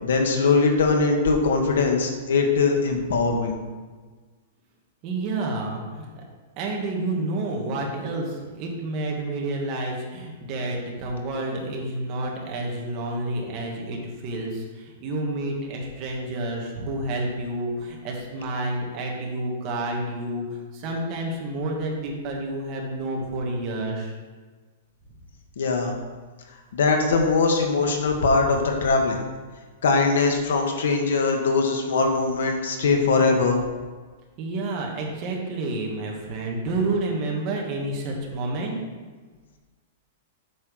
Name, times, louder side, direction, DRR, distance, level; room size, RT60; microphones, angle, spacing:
voice 1, 0.0-3.6 25.6-25.9 26.7-29.2 29.8-33.6, left 4 dB, 85° left, 3 dB, 1.5 m, -21 dB
voice 2, 5.0-6.2 6.6-24.1 34.4-38.7, right 2 dB, 25° right, -1 dB, 1.4 m, -29 dB
8.4 x 4.4 x 6.3 m, 1.4 s
supercardioid pair, 175°, 0 cm